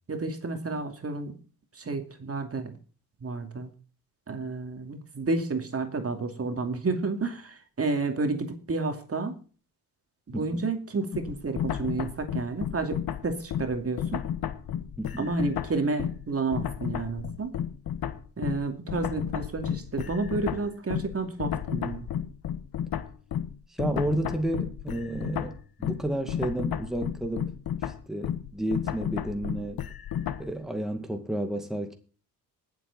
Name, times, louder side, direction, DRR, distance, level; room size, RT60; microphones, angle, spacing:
voice 1, 0.1-1.3 1.8-2.7 3.2-3.7 4.3-9.4 10.3-14.2 15.2-17.5 18.4-22.1, right 3 dB, 40° right, 2.6 m, -31 dB
sound 1, 11.1-16.3 16.5-30.5, left 9 dB, 75° left, 1.2 m, -32 dB
voice 2, 15.0-15.3 23.7-27.5 27.8-29.8 30.4-31.9, right 1 dB, ahead, 2.1 m, -31 dB
20.0 x 7.8 x 4.1 m
cardioid pair, 70°, 37 cm